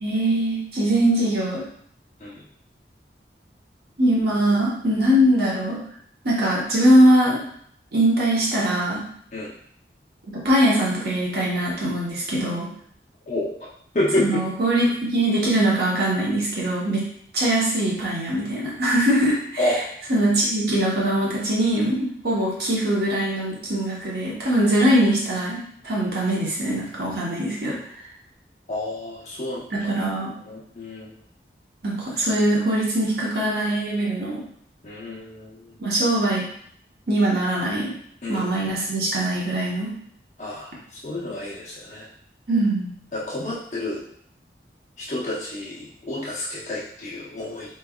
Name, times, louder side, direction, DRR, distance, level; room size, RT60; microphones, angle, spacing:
voice 1, 0.0-1.6 4.0-5.8 6.2-7.4 7.9-9.0 10.3-12.7 14.2-17.1 17.3-19.6 20.1-25.6 25.8-27.8 29.7-30.3 31.8-34.4 35.8-36.4 37.1-37.9 38.3-39.9 42.5-42.9, right 1 dB, 65° right, -5 dB, 1.1 m, -21 dB
voice 2, 13.9-14.4 19.6-19.8 28.7-29.9 30.4-31.1 34.8-35.7 38.2-38.5 40.4-42.1 43.1-44.0 45.0-47.8, left 1 dB, 40° left, -7 dB, 0.9 m, -29 dB
4.7 x 3.3 x 2.4 m, 0.65 s
head